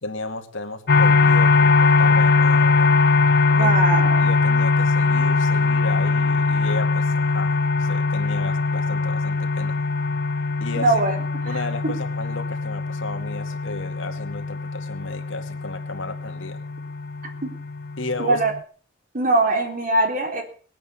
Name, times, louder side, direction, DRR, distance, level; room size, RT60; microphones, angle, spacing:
voice 1, 0.0-2.9 3.6-3.7 4.2-9.7 10.6-11.0 11.5-16.6 18.0-18.4, left 3 dB, 75° left, 6 dB, 2.3 m, -33 dB
sound 1, 0.9-18.6, left 4 dB, 55° left, 0.7 m, -21 dB
voice 2, 3.5-4.2 10.8-11.2 11.4-11.6 17.4-17.5 18.2-18.5 19.1-20.4, right 2 dB, 45° right, 4 dB, 3.7 m, -21 dB
20.0 x 9.0 x 7.1 m, 0.44 s
head